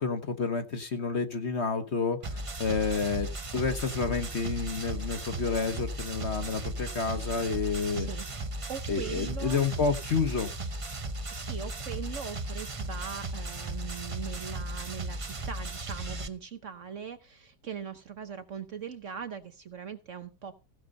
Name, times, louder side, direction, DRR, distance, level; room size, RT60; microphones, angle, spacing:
voice 1, 0.0-8.1 8.9-10.5, left 5 dB, 45° left, 1.2 m, -30 dB
sound 1, 2.2-16.3, right 2 dB, 35° right, 0.5 m, -36 dB
voice 2, 7.9-8.3 8.7-9.7 11.3-20.7, right 7 dB, 50° right, 1.1 m, -40 dB
15.5 x 6.5 x 5.3 m
omnidirectional pair, 1.8 m